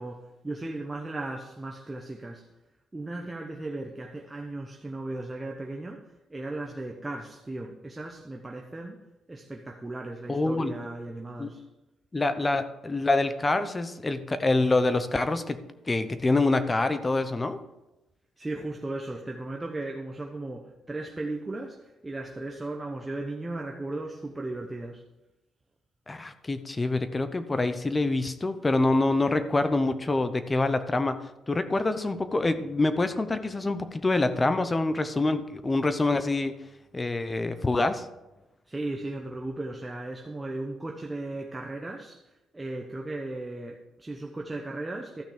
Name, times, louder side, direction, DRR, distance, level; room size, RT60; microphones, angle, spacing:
voice 1, 0.0-2.5 2.9-6.0 6.3-9.0 9.3-11.6 18.4-25.0 38.7-45.2, right 2 dB, 15° right, 0 dB, 1.0 m, -36 dB
voice 2, 10.3-10.7 11.4-11.5 12.1-15.6 15.9-17.6 26.1-31.2 31.5-36.5 36.9-38.1, left 2 dB, 20° left, 11 dB, 0.8 m, -26 dB
13.0 x 6.0 x 5.1 m, 0.96 s
cardioid pair, 90°, 0 cm